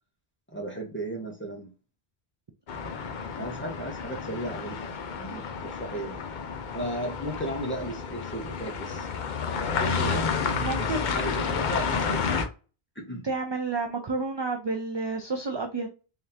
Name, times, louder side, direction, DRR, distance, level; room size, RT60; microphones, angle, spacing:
voice 1, 0.5-1.7 3.4-4.9 5.1-6.2 6.7-9.1 9.7-10.3 10.8-12.5 13.0-13.2, right 1 dB, 10° left, 0 dB, 1.1 m, -35 dB
sound 1, 2.7-12.5, left 5 dB, 55° left, 0.7 m, -30 dB
voice 2, 10.6-11.4 13.2-15.9, right 3 dB, 40° right, 4 dB, 0.4 m, -30 dB
3.7 x 3.2 x 2.8 m, 0.33 s
omnidirectional pair, 1.0 m